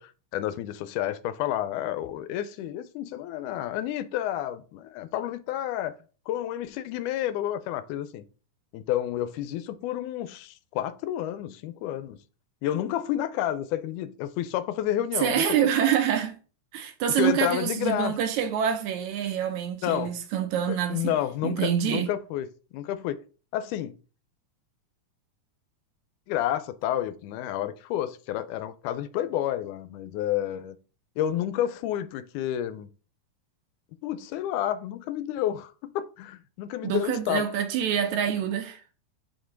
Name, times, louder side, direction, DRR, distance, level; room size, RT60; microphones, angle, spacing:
voice 1, 0.0-6.0 6.3-8.3 8.7-12.2 12.6-15.5 17.2-18.1 19.8-20.1 20.7-22.5 22.7-23.2 23.5-24.0 26.3-30.8 31.2-32.9 34.0-37.5, left 12 dB, 80° left, 2.0 m, -30 dB
voice 2, 15.2-16.4 16.7-21.2 21.4-22.1 36.8-38.8, right 9 dB, 75° right, 1.8 m, -26 dB
5.3 x 4.4 x 4.5 m
omnidirectional pair, 3.6 m